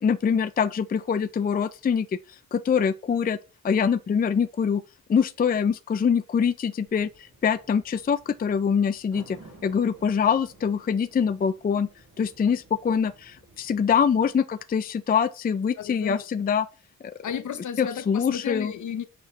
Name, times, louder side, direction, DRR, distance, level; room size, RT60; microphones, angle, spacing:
voice 1, 0.0-3.4 3.6-4.8 5.1-11.9 12.2-16.7 17.8-18.7, left 7 dB, 25° left, 0.4 m, -24 dB
sound 1, 6.9-14.3, right 2 dB, 85° right, 2.8 m, -53 dB
voice 2, 15.8-16.2 17.2-19.0, left 8 dB, 60° left, 0.9 m, -33 dB
6.9 x 5.8 x 3.2 m
cardioid pair, 95°, 34 cm